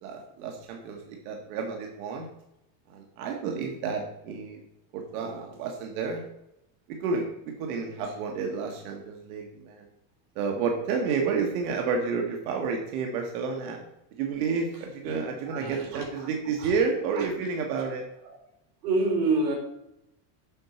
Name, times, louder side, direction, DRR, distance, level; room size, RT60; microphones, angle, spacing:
voice 1, 0.0-2.3 2.9-4.6 4.9-6.2 6.9-9.8 10.3-13.8 14.2-18.0, right 5 dB, 70° right, 2 dB, 1.5 m, -30 dB
voice 2, 15.5-16.1 16.6-16.7 17.2-17.3 18.8-19.5, right 3 dB, 90° right, 0 dB, 3.4 m, -27 dB
7.5 x 6.0 x 4.3 m, 0.83 s
cardioid pair, 180°, 46 cm